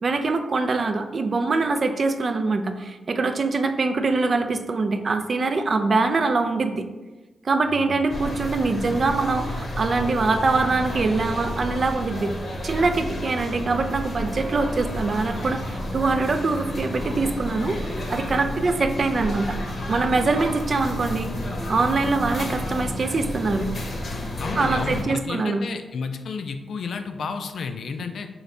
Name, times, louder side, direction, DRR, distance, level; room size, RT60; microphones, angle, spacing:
voice 1, 0.0-6.8 7.4-12.3 12.6-19.6 19.9-21.3 21.7-23.7 24.5-25.6, right 3 dB, 45° right, 7 dB, 0.3 m, -23 dB
sound 1, 8.1-25.0, left 1 dB, 50° left, 0.7 m, -31 dB
voice 2, 24.4-28.3, left 5 dB, 70° left, 7 dB, 0.3 m, -31 dB
3.8 x 2.5 x 3.2 m, 1.2 s
cardioid pair, 90°, 0 cm